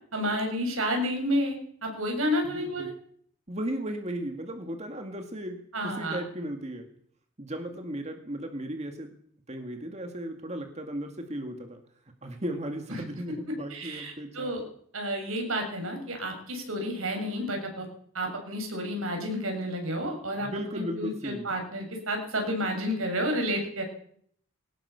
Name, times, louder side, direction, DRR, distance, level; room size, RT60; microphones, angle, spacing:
voice 1, 0.1-2.9 5.7-6.2 13.4-14.6 14.9-17.9 18.1-20.5 20.7-23.8, equal, 80° right, 3 dB, 7.0 m, -30 dB
voice 2, 2.5-2.9 3.5-6.9 7.4-9.2 9.5-11.8 12.2-14.5 20.4-21.5, right 1 dB, 30° right, 5 dB, 2.2 m, -36 dB
22.5 x 18.0 x 7.1 m, 0.63 s
head